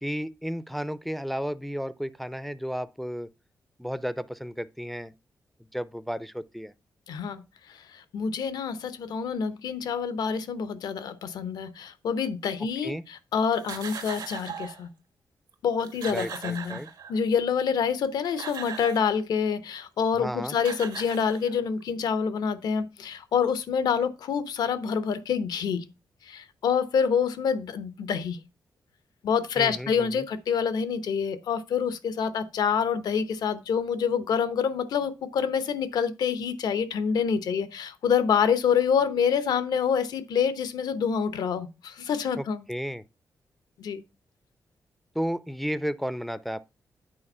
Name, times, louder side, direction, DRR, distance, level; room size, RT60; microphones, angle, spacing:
voice 1, 0.0-3.3 3.8-5.1 5.7-6.7 12.8-13.0 16.1-16.9 20.1-20.6 29.6-30.2 42.4-43.0 45.2-46.6, equal, ahead, 0.4 m, -33 dB
voice 2, 7.1-7.4 7.7-14.9 15.6-16.8 17.1-25.8 26.2-28.4 29.2-42.6 43.8-44.0, left 7 dB, 85° left, 0.9 m, -27 dB
sound 1, 13.5-14.8 15.5-15.6 15.8-17.4 18.0-19.2 20.2-20.3 20.6-21.8, right 6 dB, 85° right, 1.7 m, -39 dB
8.8 x 4.3 x 5.4 m
cardioid pair, 95°, 7 cm